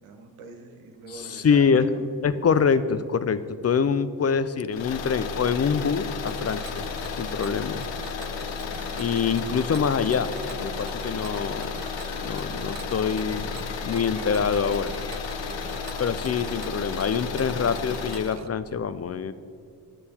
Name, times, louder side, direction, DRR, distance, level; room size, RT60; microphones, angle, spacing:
voice 1, 0.0-2.0, right 3 dB, 80° right, 4 dB, 1.2 m, -44 dB
voice 2, 1.1-1.9 2.2-6.9 7.1-7.9 8.9-10.3 10.6-11.8 12.2-15.0 16.0-19.3, left 6 dB, 35° left, 14 dB, 0.4 m, -25 dB
sound 1, 4.7-18.4, left 5 dB, 65° left, 0.7 m, -33 dB
Mechanisms, 6.3-18.5, right 7 dB, 35° right, 0.5 m, -43 dB
sound 2, 10.0-16.7, left 1 dB, 10° left, 0.8 m, -49 dB
9.7 x 6.8 x 4.3 m, 2.4 s
supercardioid pair, 50°, 49 cm